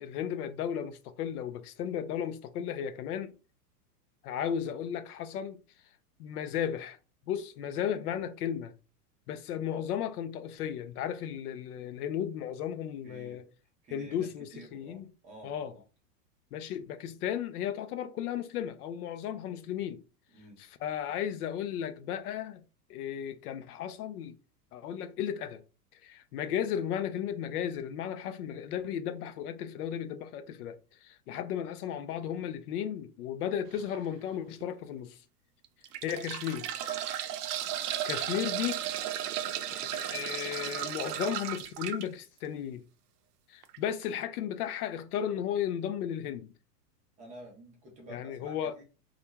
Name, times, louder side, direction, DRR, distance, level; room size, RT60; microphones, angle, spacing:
voice 1, 0.0-3.3 4.2-5.6 6.2-7.0 7.3-8.7 9.3-13.4 13.9-15.0 15.4-15.7 16.5-20.0 20.8-22.6 22.9-24.4 24.7-25.6 26.0-35.2 36.0-36.7 37.8-38.8 39.8-42.8 43.5-46.5 48.1-48.7, left 9 dB, 65° left, 0.5 m, -35 dB
voice 2, 13.0-15.8 20.3-20.6 21.1-21.3 47.2-48.8, right 1 dB, 15° right, 0.5 m, -51 dB
sound 1, 33.7-34.0 34.6-34.7 35.6-42.0 43.6-43.8 44.0-44.1, right 11 dB, 70° right, 0.5 m, -35 dB
2.3 x 2.2 x 2.9 m
hypercardioid pair, 135°, 48 cm